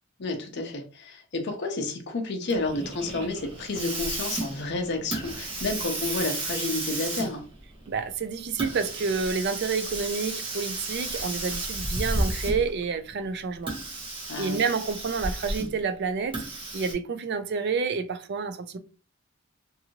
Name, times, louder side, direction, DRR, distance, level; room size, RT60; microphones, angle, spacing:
voice 1, 0.2-7.4 14.3-14.6, left 2 dB, 50° left, 0.6 m, -30 dB
Hiss, 2.5-12.8 13.6-15.8 16.3-16.9, right 2 dB, 25° right, 0.8 m, -33 dB
voice 2, 7.9-13.7 14.4-16.4 16.7-18.8, right 5 dB, 50° right, 0.4 m, -29 dB
2.6 x 2.6 x 2.8 m
head